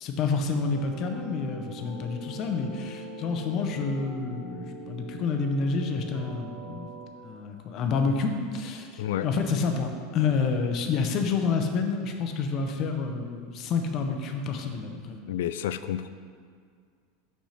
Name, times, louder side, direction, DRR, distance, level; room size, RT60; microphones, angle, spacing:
voice 1, 0.0-6.9 7.2-15.2, left 4 dB, 35° left, 4 dB, 0.6 m, -29 dB
sound 1, 0.7-7.1, right 2 dB, 65° right, 1.5 m, -42 dB
voice 2, 15.3-16.1, left 11 dB, 80° left, 12 dB, 0.3 m, -30 dB
5.9 x 4.3 x 5.7 m, 2.1 s
supercardioid pair, 165°, 0 cm